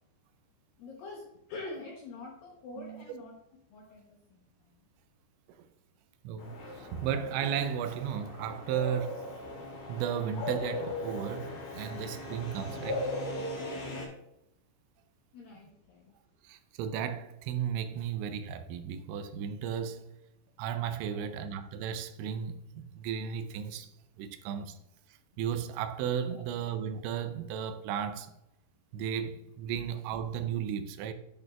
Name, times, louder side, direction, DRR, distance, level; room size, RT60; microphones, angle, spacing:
voice 1, 0.8-3.3 3.7-4.5 15.3-16.1 21.1-21.3, left 3 dB, 75° left, 2.1 m, -45 dB
voice 2, 6.2-9.2 9.9-13.1 16.4-20.1 20.6-23.9 24.2-24.8 25.4-28.3 28.9-31.1, right 8 dB, 85° right, 2.9 m, -34 dB
sound 1, 6.4-14.1, left 2 dB, 55° left, 3.8 m, -38 dB
10.5 x 6.5 x 2.3 m
omnidirectional pair, 5.4 m